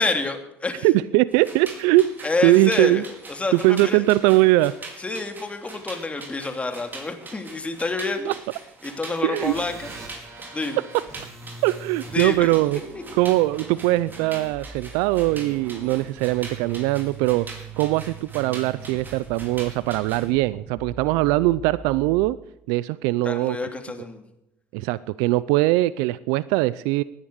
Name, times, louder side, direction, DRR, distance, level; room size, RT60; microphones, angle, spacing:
voice 1, 0.0-0.9 2.2-3.0 3.3-4.0 5.0-8.3 8.8-9.9 10.5-10.8 12.1-12.5 23.2-24.3, left 3 dB, 20° left, 6 dB, 3.0 m, -28 dB
voice 2, 0.8-3.0 3.5-4.7 8.2-8.3 9.2-9.5 11.6-12.8 13.1-17.5 17.8-22.4 22.7-23.6 24.7-27.0, right 18 dB, 80° right, 19 dB, 0.5 m, -21 dB
sound 1, 1.3-20.3, right 3 dB, 30° right, 5.1 m, -42 dB
sound 2, 9.4-22.3, right 4 dB, 50° right, 7.2 m, -42 dB
18.5 x 10.0 x 6.6 m, 0.86 s
supercardioid pair, 70°, 6 cm